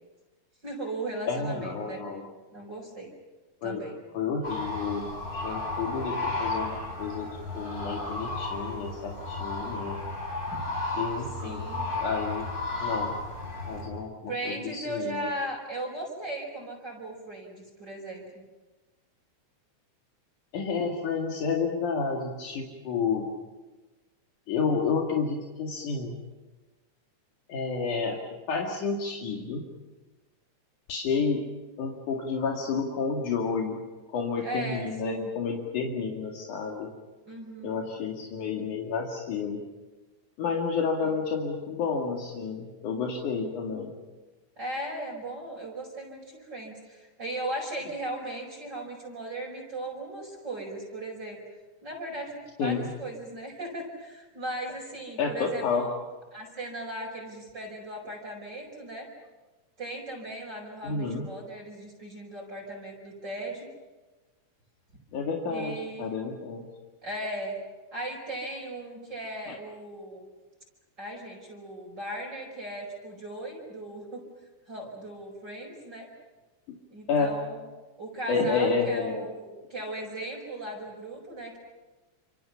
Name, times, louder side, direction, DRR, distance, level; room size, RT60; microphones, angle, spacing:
voice 1, 0.6-2.0 2.5-3.1 3.6-4.0 11.4-11.9 14.3-18.4 34.4-35.3 37.3-37.8 44.6-51.4 51.8-56.0 56.3-59.1 59.8-63.7 65.5-66.1 67.0-67.6 67.9-70.3 71.0-74.2 74.7-76.1 76.9-77.7 78.0-81.6, right 1 dB, 30° right, -2 dB, 5.5 m, -37 dB
voice 2, 1.3-2.3 3.6-3.8 4.1-7.3 7.5-10.0 11.0-11.6 12.0-12.5 12.8-13.2 13.7-15.3 20.5-23.3 24.5-26.1 27.5-28.2 28.5-29.7 30.9-31.4 31.8-33.8 34.1-36.9 37.6-39.6 40.4-44.0 52.6-52.9 55.2-55.8 60.8-61.2 65.1-66.6 69.5-69.6 77.1-77.3 78.3-79.3, left 5 dB, 75° left, -1 dB, 3.7 m, -30 dB
sound 1, 4.4-13.9, left 2 dB, 30° left, 7.4 m, -33 dB
29.5 x 27.5 x 5.7 m, 1.2 s
omnidirectional pair, 3.6 m